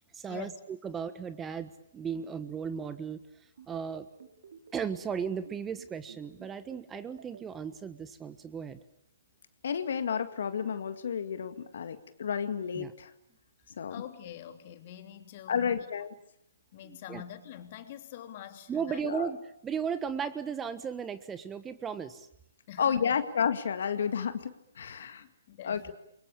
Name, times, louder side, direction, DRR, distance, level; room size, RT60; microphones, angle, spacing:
voice 1, 0.1-3.2 3.7-4.1 4.7-8.8 12.7-12.9 16.8-17.2 18.7-19.4 19.6-22.3, right 7 dB, 15° right, 13 dB, 1.3 m, -36 dB
sound 1, 3.6-7.4, right 7 dB, 60° right, 4.1 m, -51 dB
voice 2, 9.6-13.1 13.8-14.0 15.5-16.1 19.0-19.3 22.8-25.2 25.6-25.9, left 7 dB, 60° left, 10 dB, 2.0 m, -31 dB
voice 3, 13.9-15.9 16.7-19.0 22.7-23.2 25.2-25.9, left 11 dB, 40° left, 7 dB, 3.2 m, -45 dB
29.0 x 24.0 x 8.6 m, 0.76 s
figure-of-eight pair, 135°, 0 cm